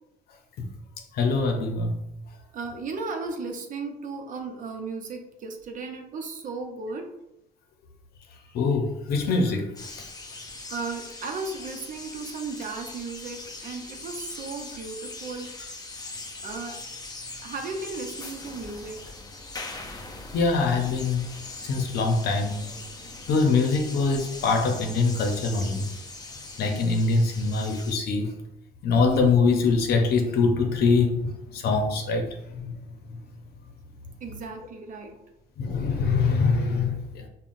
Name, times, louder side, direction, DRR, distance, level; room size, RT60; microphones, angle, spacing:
voice 1, 1.1-2.0 8.5-9.7 20.3-21.2 21.6-22.7 23.3-25.9 26.6-28.3 28.8-32.7 35.6-37.3, left 4 dB, 70° left, 3 dB, 0.7 m, -23 dB
voice 2, 2.4-7.1 10.7-15.5 16.4-16.8 17.4-19.0 34.2-35.2, right 4 dB, 50° right, 3 dB, 0.7 m, -35 dB
sound 1, 9.8-28.0, left 2 dB, 20° left, 0.6 m, -41 dB
5.5 x 2.3 x 2.6 m, 0.86 s
cardioid pair, 110°, 17 cm